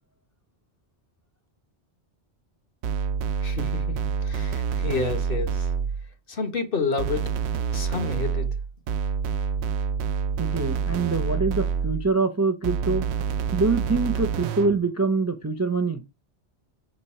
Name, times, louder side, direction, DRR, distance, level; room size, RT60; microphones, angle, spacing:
sound 1, 2.8-6.1 7.0-12.1 12.6-14.9, right 6 dB, 75° right, 0.8 m, -27 dB
voice 1, 3.4-5.7 6.3-7.3 7.7-8.5, left 4 dB, 50° left, 1.4 m, -30 dB
voice 2, 10.4-13.1 13.5-16.0, right 3 dB, 20° right, 0.5 m, -24 dB
6.7 x 5.3 x 4.2 m
omnidirectional pair, 1.2 m